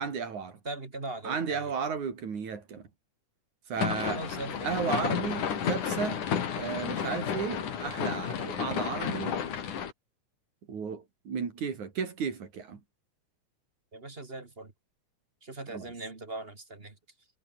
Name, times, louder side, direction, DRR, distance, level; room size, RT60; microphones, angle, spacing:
voice 1, 0.0-0.6 1.2-2.9 3.7-4.2 4.6-6.2 6.6-9.4 10.7-12.8 15.7-15.9, right 6 dB, 75° right, 5.0 m, -34 dB
voice 2, 0.6-1.7 3.9-4.7 5.2-5.4 13.9-14.7 15.4-17.0, right 2 dB, 25° right, 1.7 m, -40 dB
sound 1, 3.8-9.9, left 8 dB, 90° left, 4.1 m, -32 dB
omnidirectional pair, 3.4 m